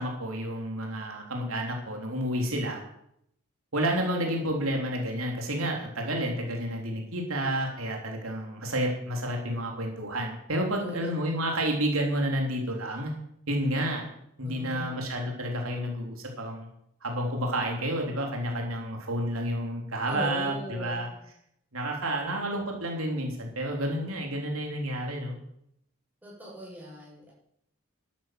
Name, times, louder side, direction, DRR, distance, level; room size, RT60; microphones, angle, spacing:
voice 1, 0.0-2.8 3.7-13.1 13.5-14.0 14.4-16.7 17.0-21.1 21.7-25.4, right 1 dB, 80° right, 1 dB, 3.5 m, -30 dB
voice 2, 10.7-11.1 14.4-15.1 20.1-21.2 26.2-27.3, equal, 10° right, -5 dB, 7.0 m, -40 dB
12.5 x 10.0 x 7.7 m, 0.74 s
head